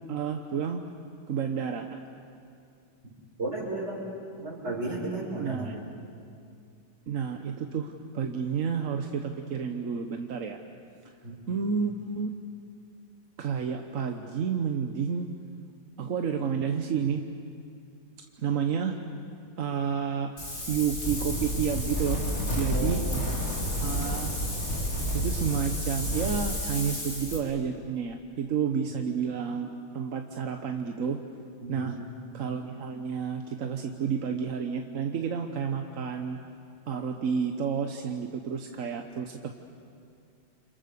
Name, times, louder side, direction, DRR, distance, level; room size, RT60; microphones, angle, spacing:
voice 1, 0.1-0.8 1.3-2.0 5.4-5.8 7.1-10.6 11.5-12.3 13.4-15.3 16.0-17.2 18.4-19.0 19.6-20.3 20.7-22.2 22.5-23.2 23.8-24.3 25.1-29.7 29.9-31.2 31.7-32.0 32.3-36.4 36.9-39.5, right 6 dB, 50° right, 5 dB, 1.2 m, -30 dB
voice 2, 3.4-4.0 4.4-5.7 11.2-11.4 22.7-23.1 28.6-28.8 31.6-32.0, right 2 dB, 30° right, -3 dB, 6.6 m, -34 dB
Wind, 20.4-27.4, equal, 35° left, 4.0 m, -30 dB
29.5 x 27.0 x 6.8 m, 2.4 s
omnidirectional pair, 2.2 m